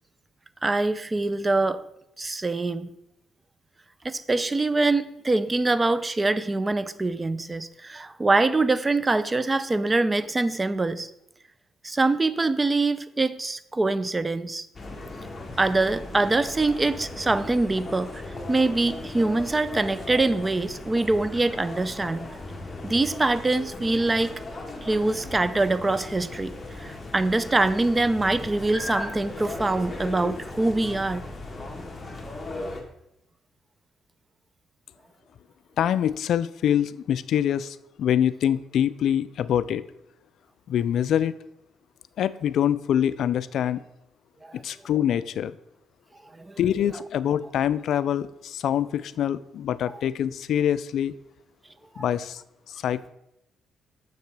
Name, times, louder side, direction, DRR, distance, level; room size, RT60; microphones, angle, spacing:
voice 1, 0.6-1.8 2.2-3.0 4.0-11.1 11.8-14.7 15.6-22.3 22.8-24.4 24.8-31.3 44.4-44.6 46.3-46.6 52.0-52.1, right 2 dB, 20° right, 15 dB, 0.4 m, -24 dB
sound 1, 14.7-32.8, left 2 dB, 20° left, 1.5 m, -37 dB
voice 2, 35.8-39.8 40.7-41.4 42.2-43.8 44.5-45.6 46.6-51.1 52.0-52.4 52.7-53.1, left 10 dB, 70° left, 16 dB, 0.3 m, -25 dB
6.8 x 6.6 x 4.7 m, 0.83 s
cardioid pair, 90°, 0 cm